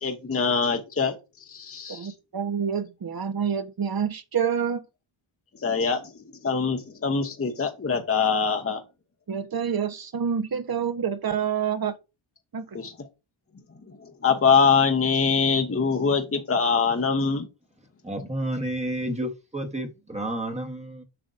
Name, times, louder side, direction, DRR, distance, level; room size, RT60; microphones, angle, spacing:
voice 1, 0.0-1.2 1.5-2.1 5.6-8.8 12.7-13.1 14.0-17.5, left 5 dB, 30° left, 1.0 m, -24 dB
voice 2, 1.9-4.8 9.3-11.9 12.5-12.6, right 7 dB, 45° right, 1.1 m, -27 dB
voice 3, 18.0-21.0, right 1 dB, 15° right, 1.2 m, -30 dB
7.8 x 5.1 x 2.6 m
cardioid pair, 60°, 49 cm